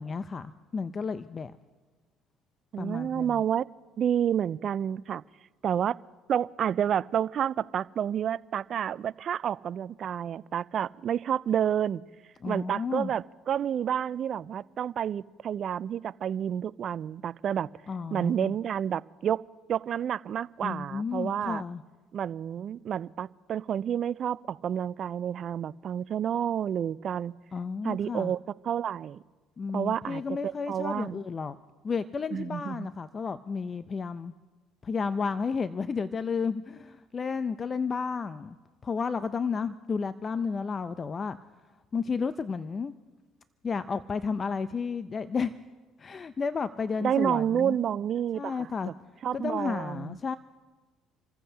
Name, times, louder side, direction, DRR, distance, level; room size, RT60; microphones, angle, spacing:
voice 1, 0.0-1.5 2.8-3.4 12.4-13.1 17.9-18.5 20.6-21.8 27.5-28.3 29.6-31.6 31.8-34.3 34.8-38.6 38.8-41.4 41.9-42.9 43.6-45.6 46.0-47.8 48.3-48.9 49.3-50.4, left 5 dB, 35° left, 12 dB, 0.6 m, -32 dB
voice 2, 2.7-3.7 4.0-5.2 5.6-6.0 6.3-12.0 12.5-17.7 18.1-19.4 19.7-21.6 22.1-27.3 27.8-28.4 28.6-29.2 29.7-31.2 32.3-32.9 47.0-48.9 49.2-50.2, right 9 dB, 50° right, 19 dB, 0.4 m, -29 dB
28.0 x 15.0 x 2.9 m, 1.3 s
hypercardioid pair, 70°, 0 cm